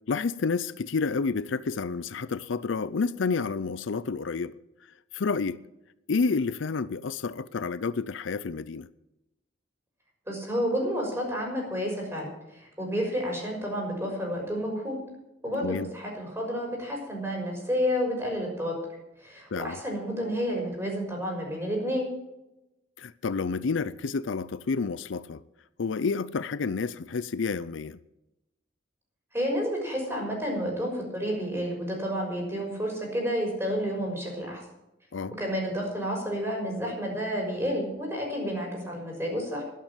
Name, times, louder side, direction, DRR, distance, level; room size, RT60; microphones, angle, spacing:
voice 1, 0.1-4.5 5.1-5.6 6.1-8.9 15.6-15.9 19.5-19.8 23.0-25.4 25.8-28.0 35.1-35.3, left 4 dB, 75° left, 0.5 m, -29 dB
voice 2, 10.3-15.0 15.4-18.8 19.2-22.1 29.3-34.6 35.4-39.6, equal, 15° right, 5.9 m, -30 dB
12.0 x 11.5 x 7.4 m
head